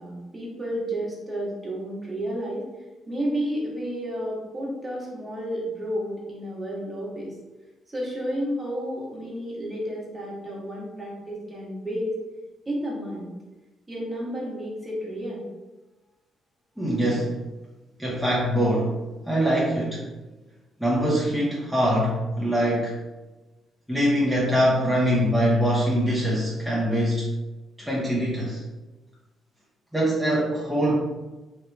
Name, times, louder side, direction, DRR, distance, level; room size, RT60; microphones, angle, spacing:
voice 1, 0.0-2.7 3.1-7.3 7.9-12.2 12.6-13.3 13.9-15.4, equal, 25° right, -4 dB, 1.3 m, -31 dB
voice 2, 16.8-17.3 18.0-19.0 19.3-20.0 20.8-23.0 23.9-27.3 27.8-28.6 29.9-31.0, equal, ahead, -7 dB, 0.8 m, -23 dB
3.0 x 2.4 x 3.3 m, 1.1 s
supercardioid pair, 60°, 0 cm